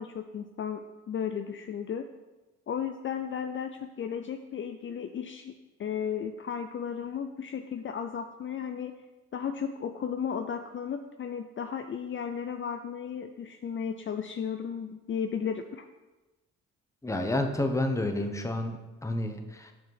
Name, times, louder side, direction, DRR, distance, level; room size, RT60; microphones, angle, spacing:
voice 1, 0.0-2.1 2.7-5.5 5.8-8.9 9.3-15.9, left 7 dB, 40° left, 7 dB, 0.5 m, -34 dB
voice 2, 17.0-19.7, left 1 dB, 10° left, 5 dB, 1.0 m, -30 dB
8.1 x 5.0 x 5.9 m, 1.1 s
cardioid pair, 90°, 30 cm